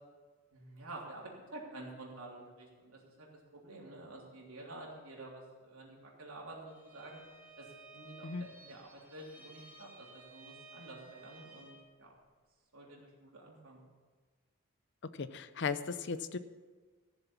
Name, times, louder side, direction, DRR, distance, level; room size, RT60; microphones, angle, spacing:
voice 1, 0.5-3.3 3.5-7.2 7.6-7.7 7.9-12.1 12.7-13.8, right 2 dB, 75° right, -2 dB, 3.3 m, -49 dB
Bowed string instrument, 6.7-11.9, right 3 dB, 10° right, 1.9 m, -55 dB
voice 2, 15.2-16.4, left 5 dB, 50° left, 13 dB, 0.6 m, -36 dB
15.0 x 7.0 x 7.2 m, 1.4 s
head